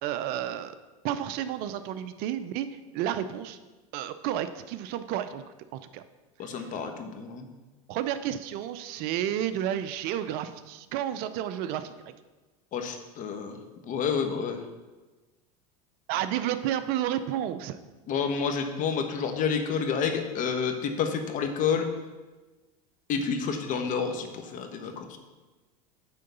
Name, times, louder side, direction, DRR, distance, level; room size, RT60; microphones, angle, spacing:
voice 1, 0.0-0.7 1.0-2.7 2.9-3.6 3.9-5.4 5.7-6.0 7.9-11.9 16.1-17.8, right 11 dB, 55° right, 12 dB, 0.6 m, -31 dB
voice 2, 6.4-7.5 12.7-13.6 13.8-14.6 18.1-21.9 23.1-25.2, left 6 dB, 45° left, 6 dB, 1.2 m, -29 dB
9.4 x 3.9 x 6.7 m, 1.2 s
supercardioid pair, 110°, 19 cm